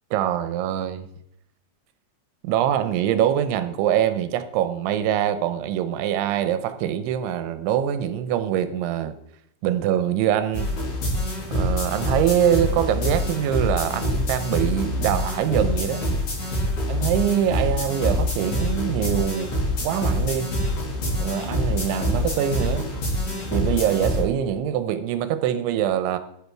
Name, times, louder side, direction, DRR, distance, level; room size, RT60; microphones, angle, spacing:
voice 1, 0.1-1.1 2.4-9.1 9.6-10.7 11.5-16.0 16.9-19.6 19.8-20.6 21.2-22.9 23.5-26.2, right 10 dB, 90° right, 3.2 m, -24 dB
sound 1, 10.5-24.2, left 1 dB, 45° left, 5.8 m, -25 dB
12.5 x 11.0 x 4.7 m
omnidirectional pair, 5.3 m